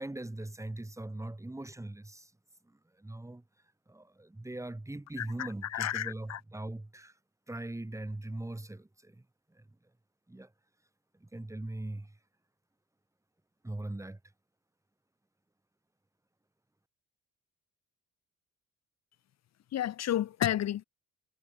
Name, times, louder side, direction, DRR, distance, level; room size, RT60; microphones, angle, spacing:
voice 1, 0.0-2.3 2.6-3.4 3.9-7.2 7.5-9.7 10.3-10.5 11.1-12.2 13.6-14.2, right 2 dB, 10° right, 2.1 m, -41 dB
voice 2, 5.2-6.4 19.7-20.8, left 11 dB, 60° left, 1.0 m, -32 dB
cardioid pair, 90°, 30 cm